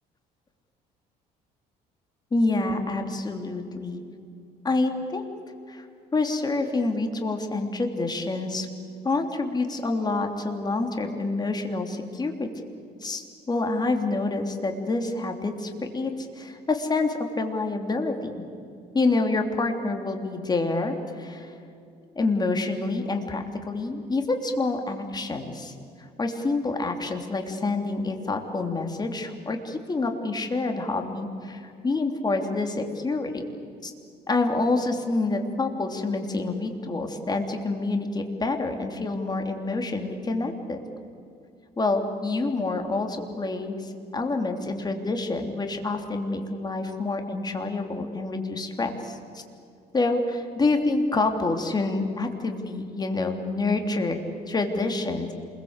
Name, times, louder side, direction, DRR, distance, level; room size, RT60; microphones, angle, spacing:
voice 1, 2.3-4.0 4.6-5.2 5.7-5.8 6.1-8.7 9.0-12.5 13.0-18.3 18.9-21.6 22.1-33.4 33.8-33.9 34.3-40.8 41.8-49.4 49.9-54.2 54.5-55.3, left 3 dB, 25° left, 4 dB, 3.2 m, -27 dB
28.0 x 22.0 x 8.2 m, 2.6 s
cardioid pair, 110°, 17 cm